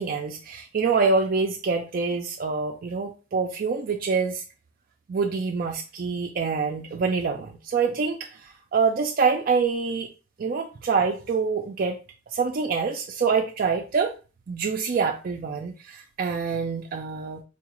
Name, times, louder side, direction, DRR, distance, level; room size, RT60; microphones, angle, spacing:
voice 1, 0.0-4.4 5.1-10.1 10.4-12.0 12.3-14.1 14.5-17.4, right 5 dB, 50° right, 2 dB, 0.4 m, -26 dB
4.6 x 2.3 x 2.9 m, 0.33 s
head